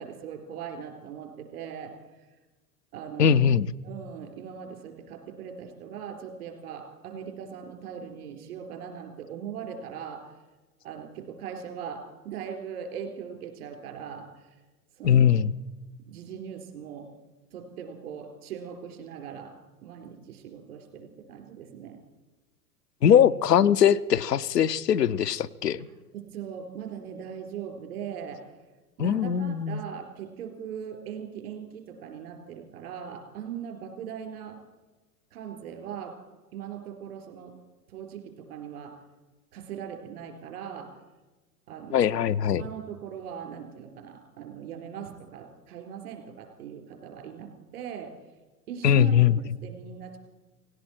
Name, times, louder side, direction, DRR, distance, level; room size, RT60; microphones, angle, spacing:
voice 1, 0.0-1.9 2.9-3.3 3.8-10.3 10.8-14.5 15.0-15.4 16.1-17.1 17.5-19.5 19.8-22.0 26.1-28.5 29.0-34.6 35.3-36.2 36.5-37.5 37.9-39.0 39.5-40.9 41.7-42.1 42.6-48.1 48.7-50.2, right 8 dB, 70° right, 4 dB, 3.9 m, -40 dB
voice 2, 3.2-3.7 15.0-15.5 23.0-25.8 29.0-29.8 41.9-42.6 48.8-49.4, left 8 dB, 90° left, 13 dB, 0.6 m, -21 dB
17.5 x 17.5 x 4.4 m, 1.2 s
hypercardioid pair, 95°, 47 cm